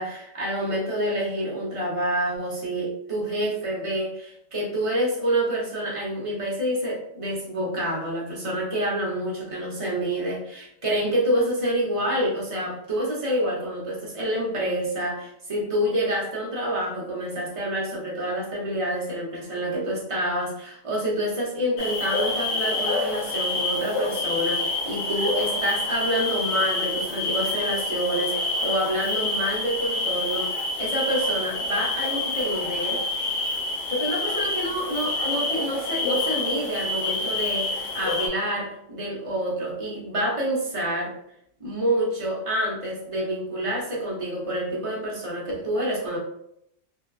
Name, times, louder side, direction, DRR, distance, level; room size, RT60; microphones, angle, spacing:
voice 1, 0.0-30.5 30.8-33.0 33.9-41.1 41.6-46.2, right 1 dB, 35° right, -5 dB, 0.7 m, -27 dB
sound 1, 21.8-38.3, left 2 dB, 65° left, 0.6 m, -27 dB
2.6 x 2.2 x 2.3 m, 0.76 s
omnidirectional pair, 1.3 m